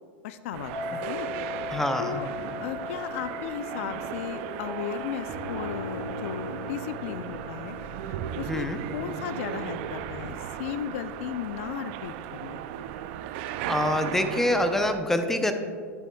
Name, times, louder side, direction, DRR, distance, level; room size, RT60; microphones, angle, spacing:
voice 1, 0.2-1.3 2.0-2.3 2.6-7.8 8.1-12.6, left 9 dB, 70° left, 12 dB, 0.4 m, -36 dB
sound 1, 0.5-15.0, right 11 dB, 60° right, 0.3 m, -36 dB
sound 2, 0.7-11.6, left 6 dB, 30° left, 1.6 m, -41 dB
voice 2, 1.7-2.2 8.4-8.8 13.7-15.5, left 1 dB, 5° left, 6 dB, 0.6 m, -25 dB
sound 3, 5.3-11.2, equal, 25° right, 1.0 m, -41 dB
10.5 x 7.0 x 2.2 m, 2.2 s
hypercardioid pair, 115°, 7 cm